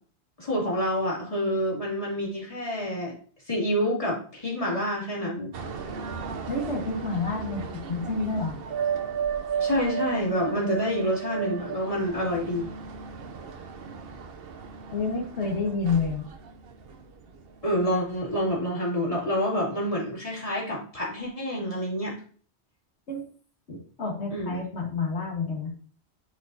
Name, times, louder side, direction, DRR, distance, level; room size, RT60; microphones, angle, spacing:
voice 1, 0.4-3.1 3.5-5.5 9.6-12.7 17.6-22.1 24.3-24.6, equal, 30° left, -4 dB, 2.7 m, -28 dB
sound 1, 5.5-17.8 18.1-18.5, right 7 dB, 60° right, 0.9 m, -35 dB
voice 2, 6.5-8.6 14.9-16.3 23.1-23.2 23.7-25.7, left 4 dB, 80° left, -1 dB, 1.7 m, -29 dB
10.0 x 4.8 x 2.7 m, 0.43 s
omnidirectional pair, 1.1 m